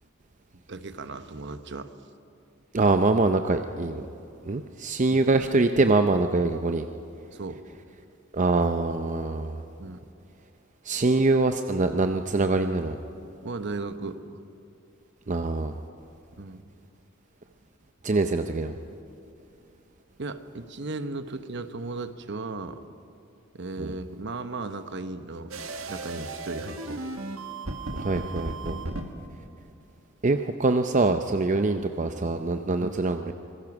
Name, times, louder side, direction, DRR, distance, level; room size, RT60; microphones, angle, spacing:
voice 1, 0.7-1.9 5.1-5.2 7.3-7.6 9.8-10.1 13.4-14.4 16.4-16.6 20.2-22.9 23.5-27.0 28.7-28.8 32.8-32.9, right 3 dB, 60° right, 10 dB, 1.1 m, -36 dB
voice 2, 2.7-4.0 4.5-6.9 8.3-9.6 10.8-13.0 15.3-15.7 18.0-18.8 23.8-23.9 27.9-28.8 30.2-33.3, right 3 dB, 35° right, 7 dB, 0.6 m, -24 dB
sound 1, 25.5-29.1, right 2 dB, 85° right, 1.8 m, -35 dB
25.5 x 21.0 x 6.1 m, 2.6 s
head